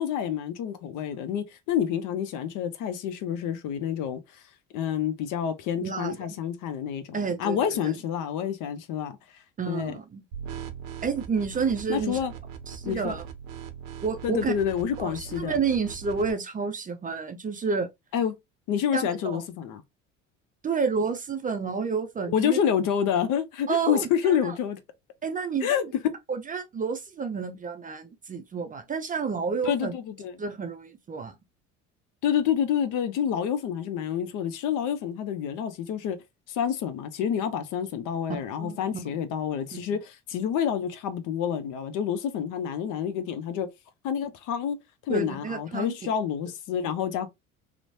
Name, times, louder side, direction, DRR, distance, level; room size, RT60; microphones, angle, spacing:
voice 1, 0.0-4.4 4.7-9.2 9.7-9.9 11.9-12.3 12.8-13.1 14.2-15.6 18.1-18.3 18.7-19.8 22.3-24.8 25.6-25.8 29.6-30.3 32.2-36.2 36.5-43.7 44.0-44.8 45.1-47.3, left 8 dB, 55° left, 0.6 m, -28 dB
voice 2, 5.8-6.2 7.1-7.9 9.6-10.2 11.0-12.2 12.7-13.3 14.0-14.5 15.0-17.9 18.9-19.4 20.6-22.6 23.7-24.5 25.2-25.9 26.3-29.9 30.4-31.3 38.3-39.2 39.7-39.8 45.1-46.1, right 5 dB, 20° right, 0.4 m, -30 dB
sound 1, 10.3-16.3, right 8 dB, 80° right, 0.6 m, -40 dB
2.9 x 2.1 x 2.6 m
hypercardioid pair, 70°, 37 cm